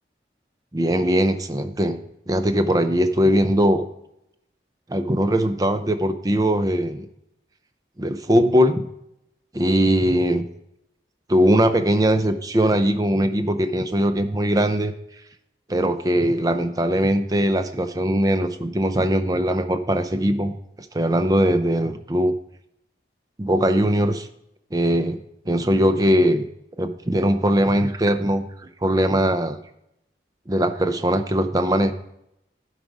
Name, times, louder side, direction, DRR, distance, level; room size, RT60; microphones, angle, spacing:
voice 1, 0.7-2.0 2.3-3.8 4.9-7.1 8.0-8.8 9.5-10.5 11.3-14.9 15.7-20.6 20.9-22.4 23.4-24.3 24.7-26.5 26.8-28.5 28.8-29.6 30.5-31.9, equal, 20° right, 9 dB, 0.5 m, -20 dB
11.5 x 4.8 x 5.2 m, 0.80 s
head